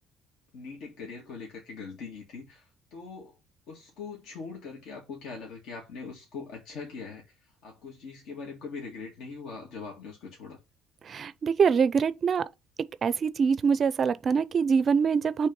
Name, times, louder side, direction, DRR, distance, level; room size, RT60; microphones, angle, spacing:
voice 1, 0.5-3.4 3.7-10.6, left 4 dB, 65° left, 2.0 m, -42 dB
voice 2, 11.1-12.4 13.0-15.5, right 6 dB, 35° right, 0.4 m, -24 dB
6.3 x 3.4 x 5.3 m
cardioid pair, 155°, 0 cm